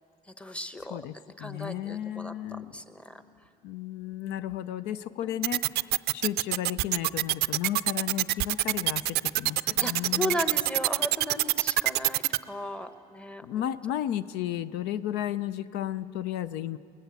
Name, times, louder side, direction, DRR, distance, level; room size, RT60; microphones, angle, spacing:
voice 1, 0.4-1.0 1.4-3.2 4.2-4.5 5.2-5.4 9.8-13.5, left 1 dB, 5° left, 10 dB, 1.0 m, -36 dB
voice 2, 1.4-2.8 3.6-10.4 13.4-16.8, left 11 dB, 90° left, 15 dB, 0.5 m, -33 dB
sound 1, 5.4-12.4, right 17 dB, 75° right, 0.4 m, -25 dB
21.5 x 19.0 x 8.2 m, 2.8 s
cardioid pair, 110°, 17 cm